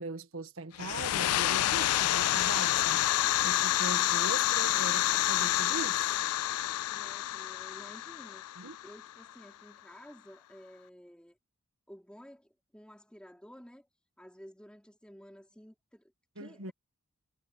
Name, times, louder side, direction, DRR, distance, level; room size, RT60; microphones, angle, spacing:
voice 1, 0.0-6.2 8.6-8.8 16.4-16.7, right 2 dB, 70° right, 1.5 m, -41 dB
sound 1, 0.7-9.3, left 14 dB, 90° left, 0.3 m, -28 dB
voice 2, 6.9-8.5 8.8-11.4 11.9-13.9 14.2-16.7, equal, 5° left, 3.3 m, -53 dB
head